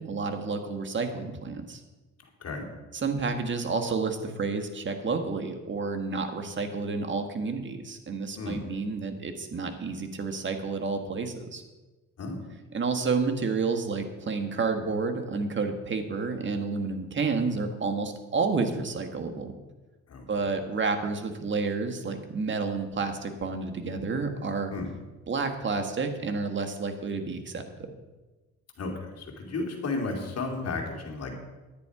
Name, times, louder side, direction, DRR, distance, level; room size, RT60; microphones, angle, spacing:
voice 1, 0.0-1.8 2.9-11.6 12.7-19.5 20.3-24.7 25.3-27.6, right 4 dB, 40° right, 5 dB, 1.5 m, -30 dB
voice 2, 28.8-31.4, left 3 dB, 55° left, 2 dB, 2.6 m, -33 dB
10.5 x 9.7 x 4.8 m, 1.2 s
cardioid pair, 90°, 30 cm